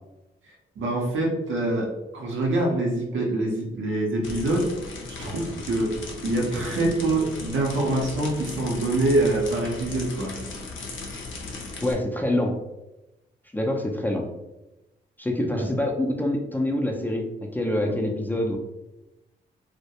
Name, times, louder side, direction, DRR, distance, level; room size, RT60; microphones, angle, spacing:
voice 1, 0.8-4.7 5.2-6.0 6.2-10.3 15.5-15.7 17.9-18.0, right 2 dB, 75° right, -1 dB, 0.7 m, -25 dB
sound 1, 4.2-11.9, left 3 dB, 80° left, 0.5 m, -37 dB
voice 2, 11.8-12.5 13.5-14.2 15.2-17.2 17.5-18.6, left 1 dB, 10° left, 1 dB, 0.4 m, -25 dB
2.2 x 2.1 x 2.8 m, 0.98 s
supercardioid pair, 50°, 20 cm